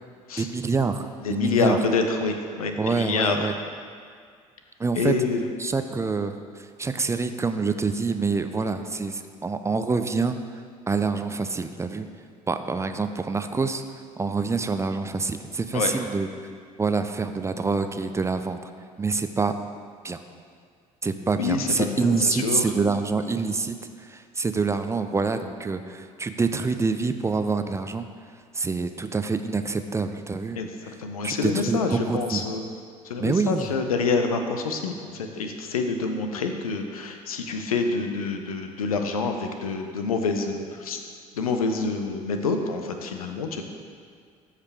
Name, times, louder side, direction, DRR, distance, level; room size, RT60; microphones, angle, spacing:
voice 1, 0.4-1.8 2.8-3.5 4.8-5.1 5.6-10.4 10.9-12.1 12.5-13.8 14.2-16.3 16.8-18.6 19.0-19.5 20.0-20.2 21.0-28.1 28.5-30.6 31.2-32.4 33.2-33.7, right 4 dB, 15° right, 8 dB, 0.4 m, -26 dB
voice 2, 1.2-3.4 5.0-5.4 15.7-15.9 21.4-22.6 30.6-30.7 31.0-32.6 33.0-41.0 41.3-43.6, left 4 dB, 80° left, 5 dB, 0.6 m, -27 dB
13.0 x 4.9 x 3.5 m, 2.1 s
figure-of-eight pair, 55°, 18 cm